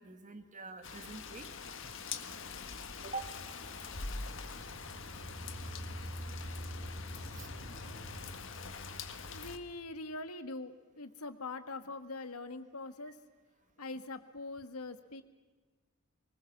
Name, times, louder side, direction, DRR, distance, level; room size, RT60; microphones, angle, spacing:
voice 1, 0.0-1.5 1.8-1.9 3.0-3.3 4.7-4.8 5.1-5.2 6.2-6.4 7.3-7.6 9.3-9.5, right 3 dB, 35° right, 7 dB, 1.9 m, -46 dB
Rain, 0.8-9.6, left 4 dB, 60° left, 1.7 m, -44 dB
sound 1, 2.4-9.2, equal, ahead, 7.1 m, -47 dB
voice 2, 6.7-7.4 9.3-13.2 13.8-15.2, left 2 dB, 85° left, 9 dB, 1.6 m, -43 dB
24.0 x 20.0 x 7.3 m, 1.3 s
head